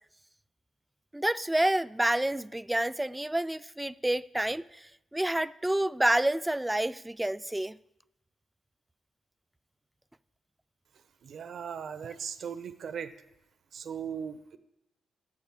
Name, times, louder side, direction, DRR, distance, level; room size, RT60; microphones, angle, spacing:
voice 1, 1.1-7.8, right 1 dB, 10° right, 0.3 m, -28 dB
voice 2, 11.2-13.1 13.7-14.6, right 7 dB, 65° right, 0.8 m, -38 dB
9.9 x 7.2 x 8.8 m
cardioid pair, 115°, 0 cm